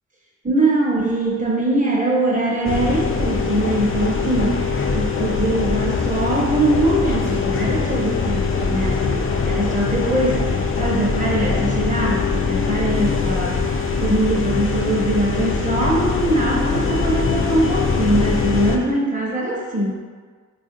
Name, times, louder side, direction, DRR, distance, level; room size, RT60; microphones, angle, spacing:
voice 1, 0.4-4.6 4.9-10.5 10.8-13.6 14.0-20.0, right 1 dB, 25° right, -4 dB, 0.9 m, -22 dB
sound 1, 2.6-18.8, left 4 dB, 45° left, 0.4 m, -22 dB
4.3 x 2.5 x 2.6 m, 1.5 s
cardioid pair, 75°, 30 cm